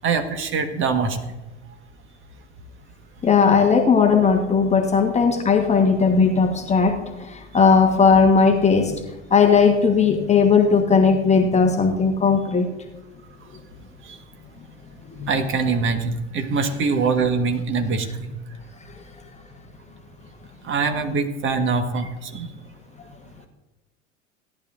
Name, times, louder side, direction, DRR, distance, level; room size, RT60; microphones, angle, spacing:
voice 1, 0.0-1.2 14.1-14.2 15.3-18.3 20.6-22.5, right 4 dB, 30° right, 6 dB, 1.5 m, -23 dB
voice 2, 3.2-12.7 15.1-15.3 18.9-19.0, left 5 dB, 15° left, 4 dB, 1.2 m, -17 dB
17.5 x 11.0 x 2.5 m, 1.1 s
figure-of-eight pair, 90°, 39 cm